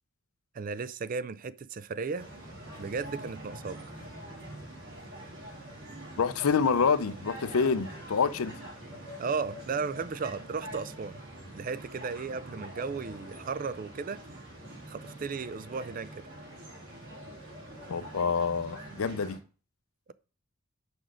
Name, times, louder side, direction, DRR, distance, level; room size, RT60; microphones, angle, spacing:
voice 1, 0.5-2.3 2.8-3.8 9.2-11.2 11.5-14.2 14.9-16.3, right 5 dB, 40° right, 0.3 m, -35 dB
sound 1, 2.1-19.4, right 1 dB, 60° right, 3.1 m, -45 dB
voice 2, 6.2-8.5 17.9-19.4, left 5 dB, 80° left, 0.5 m, -27 dB
6.2 x 5.1 x 6.2 m
head